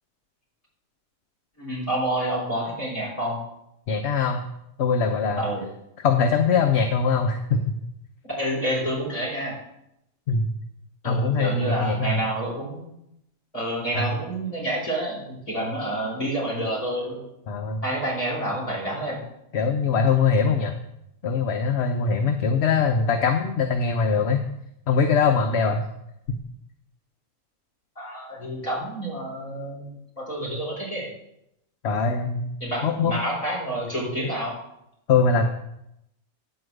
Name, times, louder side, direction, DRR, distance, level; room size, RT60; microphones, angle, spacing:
voice 1, 1.6-3.4 5.4-5.7 8.3-9.6 11.0-12.8 13.5-17.2 17.8-19.2 27.9-29.9 30.2-31.1 32.6-34.5, right 1 dB, 25° left, -5 dB, 4.7 m, -28 dB
voice 2, 3.9-4.4 4.8-5.4 6.0-7.8 10.3-10.5 11.0-12.2 13.9-14.1 17.5-17.8 19.5-20.7 21.2-24.5 24.9-25.8 26.3-26.4 31.8-32.6 32.8-33.1 35.1-35.5, left 5 dB, 55° left, 5 dB, 0.9 m, -22 dB
10.0 x 4.8 x 7.8 m, 0.82 s
omnidirectional pair, 1.4 m